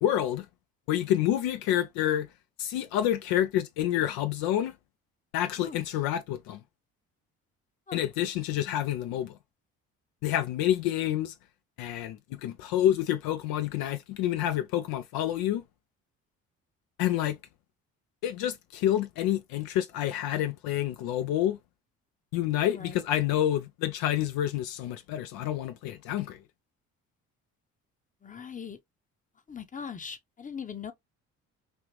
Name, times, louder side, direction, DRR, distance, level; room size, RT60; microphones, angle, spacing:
voice 1, 0.0-0.5 0.9-2.3 2.6-4.7 5.3-6.6 7.9-9.4 10.2-11.3 11.8-15.6 17.0-17.4 18.2-21.6 22.3-26.4, left 12 dB, 65° left, 0.5 m, -28 dB
voice 2, 28.2-28.8 29.5-30.9, left 7 dB, 20° left, 0.8 m, -40 dB
3.4 x 2.5 x 2.9 m
hypercardioid pair, 55°, 39 cm